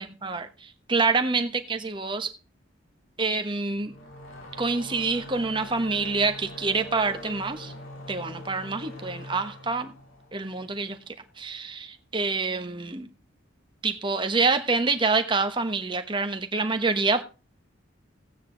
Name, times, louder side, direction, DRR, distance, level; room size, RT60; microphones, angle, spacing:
voice 1, 0.0-2.3 3.2-3.9 4.6-7.7 8.1-9.9 10.3-13.1 13.8-17.2, right 4 dB, 25° right, 1.1 m, -27 dB
sound 1, 3.8-11.2, equal, 90° left, 3.8 m, -43 dB
15.5 x 8.9 x 3.9 m
head